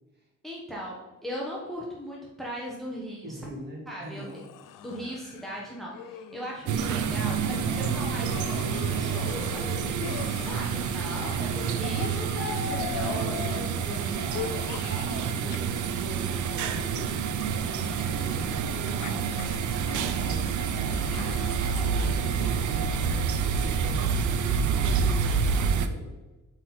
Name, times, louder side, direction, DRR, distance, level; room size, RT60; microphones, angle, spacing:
voice 1, 0.4-3.4 3.9-4.3 4.8-13.4, equal, ahead, -4 dB, 1.1 m, -38 dB
voice 2, 3.2-4.4 10.9-11.7 12.8-19.4 19.9-23.3 23.6-26.2, right 1 dB, 35° right, -2 dB, 2.0 m, -41 dB
sound 1, 4.0-15.6 15.8-18.5 18.9-23.4, left 9 dB, 85° left, 0.6 m, -41 dB
sound 2, 6.7-25.9, right 6 dB, 70° right, 0.6 m, -28 dB
7.9 x 4.3 x 4.4 m, 1.1 s
cardioid pair, 135°, 31 cm